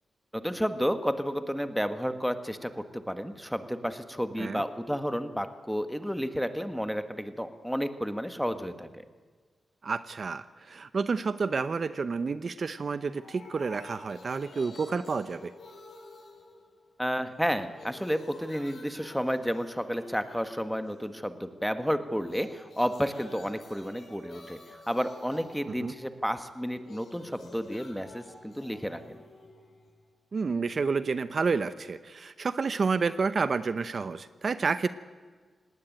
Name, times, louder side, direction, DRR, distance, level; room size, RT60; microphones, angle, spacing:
voice 1, 0.3-9.0 17.0-24.6 24.9-29.2, equal, ahead, 9 dB, 1.6 m, -31 dB
voice 2, 9.8-15.5 25.7-25.9 30.3-34.9, right 4 dB, 55° right, 13 dB, 0.8 m, -30 dB
sound 1, 13.1-17.1 17.4-21.2 22.2-30.2, left 2 dB, 75° left, 7.1 m, -50 dB
19.0 x 18.0 x 9.2 m, 1.5 s
cardioid pair, 75°, 0 cm